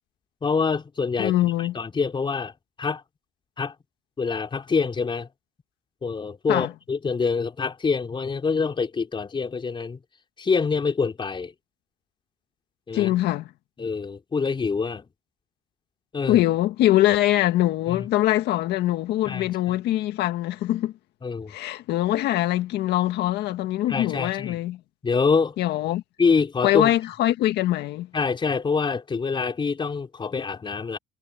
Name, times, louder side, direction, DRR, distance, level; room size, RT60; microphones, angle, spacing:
voice 1, 0.4-2.5 2.8-3.0 3.6-3.7 4.2-5.3 6.0-10.0 10.4-11.5 12.9-13.1 13.8-15.1 16.1-16.4 17.9-18.1 19.3-19.5 21.2-21.5 23.9-24.6 25.0-25.6 26.2-26.9 28.1-31.0, left 5 dB, 30° left, 4.1 m, -25 dB
voice 2, 1.2-1.7 6.5-6.7 12.9-13.5 16.3-20.9 21.5-24.8 25.6-26.0 26.6-28.1, left 14 dB, 80° left, 1.8 m, -23 dB
cardioid pair, 110°, 17 cm